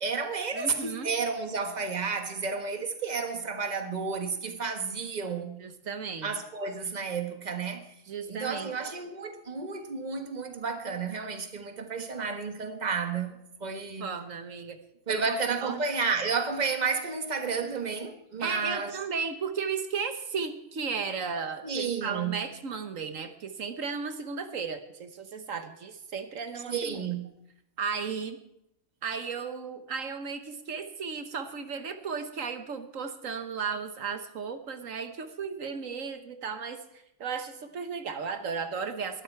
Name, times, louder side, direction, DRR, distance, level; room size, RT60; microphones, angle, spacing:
voice 1, 0.0-5.6 6.2-7.9 8.3-14.1 15.1-19.0 21.6-22.4 26.7-27.3, right 5 dB, 35° right, 1.5 m, -31 dB
voice 2, 0.5-1.1 5.6-6.3 8.1-8.7 14.0-14.8 15.1-15.8 18.4-27.0 27.8-28.4 29.0-36.8 37.2-39.2, right 5 dB, 80° right, 1.5 m, -35 dB
21.5 x 12.0 x 4.6 m
omnidirectional pair, 1.4 m